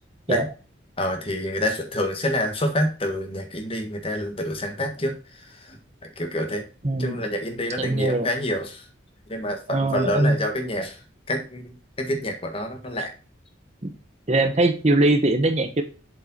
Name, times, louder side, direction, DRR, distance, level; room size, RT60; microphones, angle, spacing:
voice 1, 1.0-5.1 5.7-5.8 6.2-6.6 7.0-8.8 9.3-11.0 11.3-13.1, left 1 dB, 30° left, 4 dB, 1.6 m, -27 dB
voice 2, 6.8-7.2 7.8-8.3 9.7-10.4 13.8-13.9 14.3-15.8, right 2 dB, 35° right, 7 dB, 1.0 m, -21 dB
7.6 x 5.4 x 4.0 m, 0.35 s
head